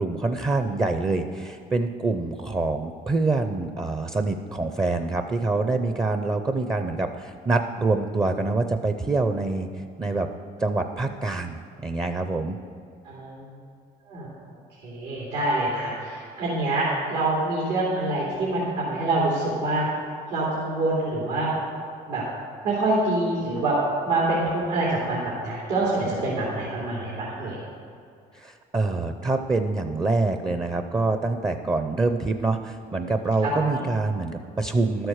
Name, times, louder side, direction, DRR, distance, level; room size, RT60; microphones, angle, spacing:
voice 1, 0.0-9.7 10.0-10.3 10.6-12.6 28.3-35.1, right 3 dB, 20° right, 8 dB, 0.6 m, -25 dB
voice 2, 13.0-13.5 14.1-14.2 14.8-19.9 20.3-21.5 22.1-22.2 22.6-23.8 24.0-27.6, right 2 dB, 85° right, -6 dB, 3.0 m, -26 dB
12.5 x 7.9 x 6.4 m, 2.4 s
cardioid pair, 110°, 17 cm